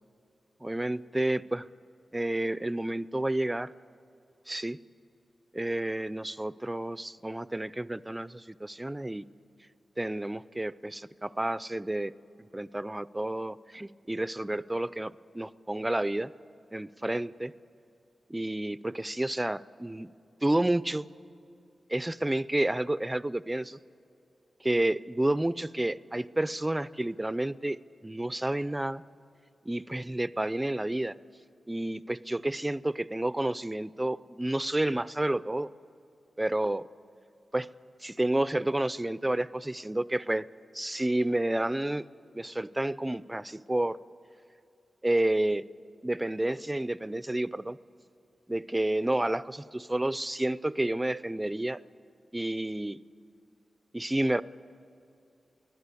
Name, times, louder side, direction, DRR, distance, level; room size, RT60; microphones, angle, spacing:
voice 1, 0.6-1.7 2.1-3.7 4.5-4.8 5.5-9.2 10.0-12.1 12.5-16.3 16.7-17.5 18.3-20.1 20.4-21.1 21.9-23.8 24.6-29.0 29.7-31.1 31.7-35.7 36.4-36.8 37.5-37.7 38.0-40.5 40.7-42.1 42.3-44.0 45.0-45.6 46.0-47.8 48.5-51.8 52.3-53.0 53.9-54.4, right 1 dB, 15° right, 17 dB, 0.4 m, -30 dB
24.0 x 16.5 x 8.3 m, 2.7 s
wide cardioid pair, 100°, 0 cm